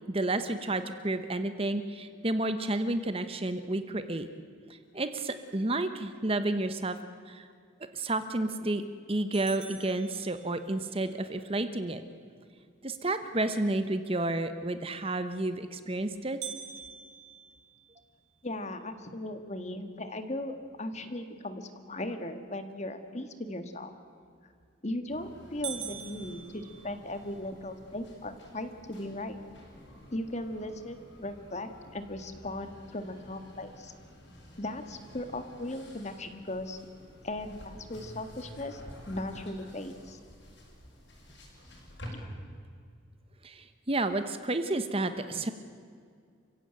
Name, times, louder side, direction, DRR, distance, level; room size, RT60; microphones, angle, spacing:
voice 1, 0.1-4.3 4.9-7.0 7.3-7.5 7.9-8.8 9.1-12.0 12.8-16.4 43.4-45.5, right 2 dB, 30° right, 10 dB, 1.0 m, -31 dB
sound 1, 9.3-10.9 16.4-18.6 19.1-19.2 19.7-19.8 20.4-20.8 24.4-24.8 25.2-25.3 25.6-27.4, right 10 dB, 60° right, 2.4 m, -44 dB
voice 2, 18.4-23.9 24.8-29.4 30.1-33.9 34.6-36.8 37.2-38.8 39.1-40.2, left 1 dB, 35° left, 8 dB, 1.7 m, -37 dB
sound 2, 25.1-42.1, equal, 65° left, 6.7 m, -51 dB
29.0 x 16.0 x 9.0 m, 2.2 s
head